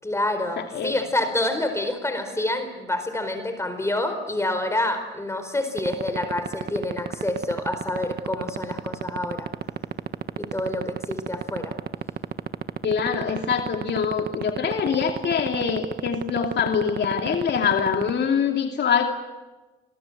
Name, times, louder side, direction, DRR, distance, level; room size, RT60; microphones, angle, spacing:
voice 1, 0.0-9.5 10.4-11.7, left 1 dB, 15° left, 7 dB, 4.5 m, -27 dB
voice 2, 0.6-1.0 12.8-19.0, left 7 dB, 60° left, 4 dB, 2.7 m, -24 dB
sound 1, 5.8-18.1, right 8 dB, 50° right, 1.5 m, -27 dB
29.5 x 24.0 x 8.1 m, 1.1 s
cardioid pair, 90°, 20 cm